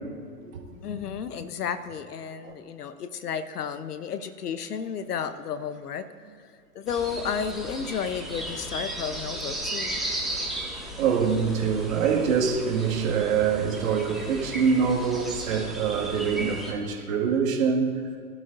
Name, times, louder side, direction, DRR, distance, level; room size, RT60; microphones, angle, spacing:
voice 1, 0.7-6.3 6.7-10.0, left 7 dB, 70° left, 1.0 m, -32 dB
sound 1, 6.9-16.7, right 1 dB, ahead, 2.0 m, -35 dB
voice 2, 11.0-17.9, right 6 dB, 55° right, 2.2 m, -24 dB
20.5 x 12.0 x 2.7 m
hypercardioid pair, 120°, 48 cm